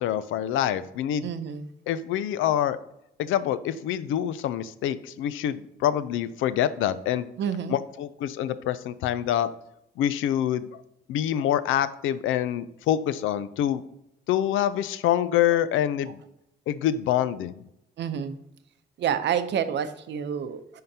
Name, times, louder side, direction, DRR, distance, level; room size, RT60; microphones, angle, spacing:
voice 1, 0.0-1.3 1.9-2.8 3.2-7.3 7.7-9.5 10.0-10.8 11.1-13.8 14.3-16.2 16.7-17.5, left 11 dB, 85° left, 15 dB, 0.5 m, -26 dB
voice 2, 1.2-1.7 7.4-7.8 18.0-18.4 19.0-20.8, right 8 dB, 65° right, 10 dB, 0.7 m, -28 dB
10.5 x 3.8 x 2.8 m, 0.81 s
cardioid pair, 90°, 20 cm